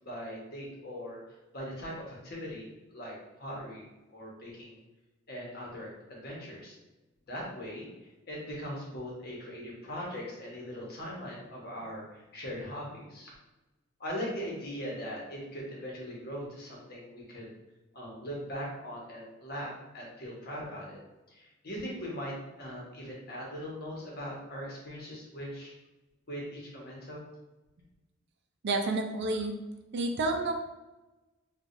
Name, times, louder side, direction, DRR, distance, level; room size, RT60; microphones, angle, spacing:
voice 1, 0.0-1.2 1.5-3.8 4.1-4.8 5.3-6.8 7.3-7.9 8.3-13.3 14.0-17.5 17.9-21.0 21.3-25.7 26.3-27.2, equal, 50° left, -4 dB, 1.2 m, -40 dB
voice 2, 28.6-29.5 29.9-30.5, right 2 dB, 60° right, 4 dB, 0.4 m, -29 dB
4.7 x 2.4 x 2.6 m, 1.1 s
head